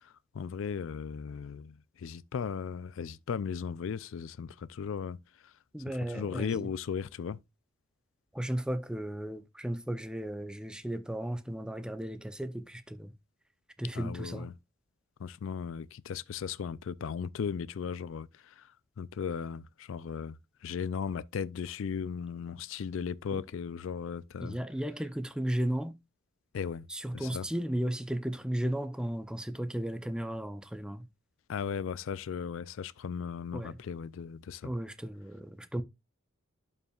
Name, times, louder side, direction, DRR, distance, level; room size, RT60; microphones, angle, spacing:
voice 1, 0.4-1.7 2.0-5.2 6.1-7.4 14.0-14.5 15.2-18.3 19.0-20.3 20.6-24.6 26.5-26.8 27.1-27.5 31.5-34.7, left 6 dB, 70° left, 0.4 m, -36 dB
voice 2, 5.7-6.7 8.3-13.1 13.8-14.5 23.3-23.4 24.4-25.9 26.9-31.1 33.5-33.8 34.6-35.8, right 1 dB, 5° right, 0.6 m, -35 dB
11.5 x 5.5 x 2.4 m
head